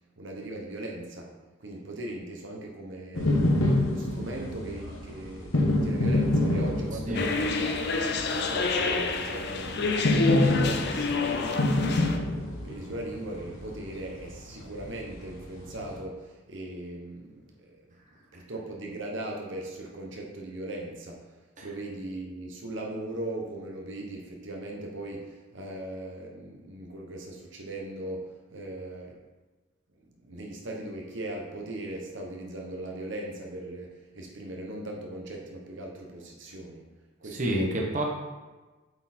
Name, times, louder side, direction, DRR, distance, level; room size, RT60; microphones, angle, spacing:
voice 1, 0.2-1.3 1.6-3.4 3.9-7.9 8.3-12.3 12.6-17.8 18.3-21.3 21.6-29.2 30.2-36.9 37.2-37.8, right 1 dB, 65° right, 0 dB, 1.0 m, -39 dB
sound 1, 3.1-16.0, left 1 dB, 75° left, 1.2 m, -28 dB
sound 2, 7.1-12.2, left 4 dB, 55° left, 0.6 m, -28 dB
voice 2, 37.3-38.0, right 1 dB, 35° right, -1 dB, 1.1 m, -28 dB
7.7 x 4.4 x 4.3 m, 1.2 s
head